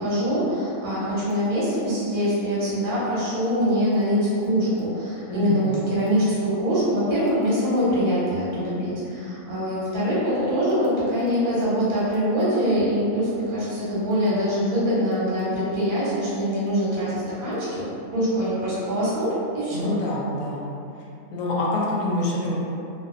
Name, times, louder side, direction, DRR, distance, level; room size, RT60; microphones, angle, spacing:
voice 1, 0.0-20.0, equal, 70° right, -9 dB, 1.3 m, -24 dB
voice 2, 5.3-5.8 19.7-20.6 21.0-21.1 21.3-22.6, left 1 dB, 70° left, -4 dB, 0.9 m, -26 dB
2.5 x 2.4 x 2.4 m, 2.6 s
omnidirectional pair, 1.5 m